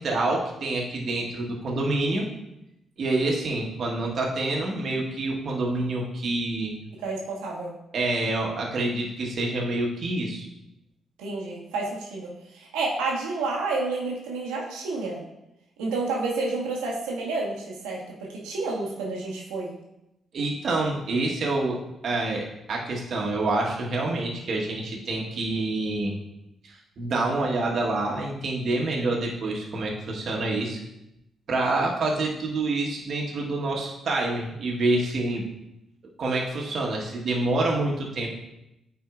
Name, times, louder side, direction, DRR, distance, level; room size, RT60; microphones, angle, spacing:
voice 1, 0.0-2.3 3.0-6.8 7.9-10.4 20.3-26.1 26.6-30.8 31.5-35.4 36.2-38.3, right 2 dB, 60° right, -1 dB, 1.3 m, -27 dB
voice 2, 7.0-7.7 11.2-15.2 15.8-19.7, right 3 dB, 85° right, -3 dB, 1.3 m, -30 dB
9.3 x 4.2 x 2.4 m, 0.86 s
hypercardioid pair, 50°, 0 cm